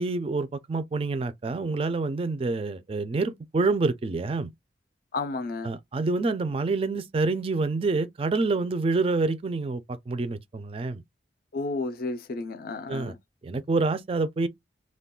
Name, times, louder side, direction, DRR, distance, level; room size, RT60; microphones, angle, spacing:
voice 1, 0.0-4.5 5.6-11.0 12.9-13.2 13.4-14.5, right 3 dB, 30° right, 0.3 m, -27 dB
voice 2, 5.1-5.7 11.5-13.2, left 3 dB, 50° left, 0.4 m, -32 dB
2.3 x 2.2 x 3.5 m
head